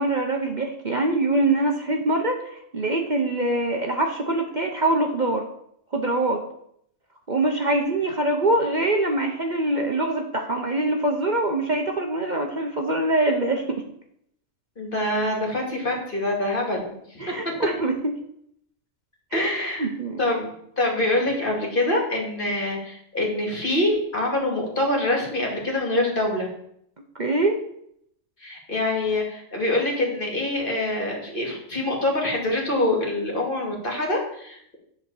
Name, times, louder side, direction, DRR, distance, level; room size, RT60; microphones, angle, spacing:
voice 1, 0.0-5.4 5.9-6.4 7.3-13.8 17.2-18.1 19.3-19.5 19.8-20.2 27.2-27.6, right 2 dB, 40° right, 2 dB, 1.0 m, -24 dB
voice 2, 14.8-17.6 19.3-19.9 20.2-20.5 20.8-26.5 28.4-34.8, left 1 dB, 45° left, 0 dB, 2.5 m, -25 dB
10.5 x 4.2 x 7.0 m, 0.71 s
omnidirectional pair, 1.3 m